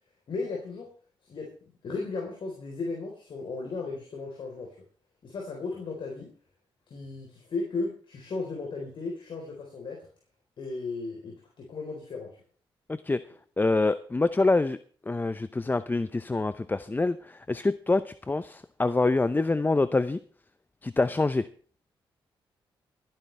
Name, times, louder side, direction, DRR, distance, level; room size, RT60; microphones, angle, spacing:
voice 1, 0.3-0.9 1.3-1.5 1.8-4.8 5.2-6.3 6.9-10.1 10.6-12.4, left 3 dB, 65° left, 0 dB, 4.1 m, -35 dB
voice 2, 12.9-13.2 13.6-14.8 15.1-20.2 20.8-21.5, left 3 dB, 20° left, 13 dB, 0.7 m, -26 dB
23.0 x 10.0 x 3.4 m, 0.43 s
cardioid pair, 65°, 9 cm